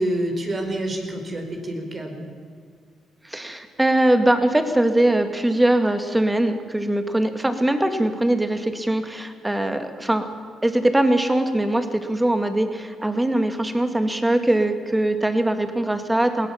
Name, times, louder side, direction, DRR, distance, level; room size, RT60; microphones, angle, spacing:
voice 1, 0.0-2.3, right 1 dB, 35° right, 4 dB, 4.6 m, -27 dB
voice 2, 3.2-10.3 10.6-16.5, right 1 dB, 10° right, 8 dB, 2.3 m, -21 dB
21.0 x 17.5 x 7.3 m, 2.1 s
cardioid pair, 90°, 0 cm